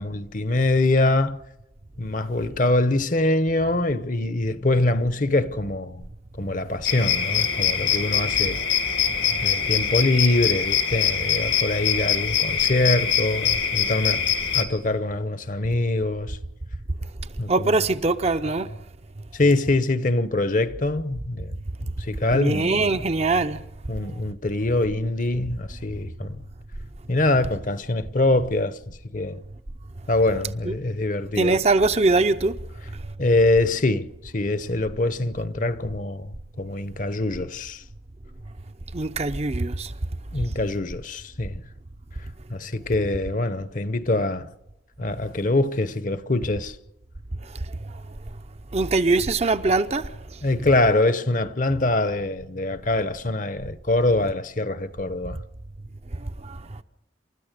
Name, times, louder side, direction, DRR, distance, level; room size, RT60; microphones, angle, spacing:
voice 1, 0.0-1.4 2.0-6.0 6.4-8.6 9.4-14.2 14.5-16.4 17.4-17.7 19.3-22.9 23.9-26.4 27.1-29.4 30.1-31.6 33.2-37.8 40.3-41.6 42.5-44.5 45.0-46.8 50.4-55.4, left 2 dB, 45° left, 0.9 m, -24 dB
sound 1, 6.8-14.6, left 7 dB, 75° left, 2.0 m, -23 dB
voice 2, 17.5-18.8 22.3-23.6 30.6-30.7 31.4-32.6 38.9-39.9 47.4-48.0 48.7-50.1 56.1-56.8, right 3 dB, 35° right, 0.7 m, -23 dB
29.0 x 13.5 x 6.6 m
head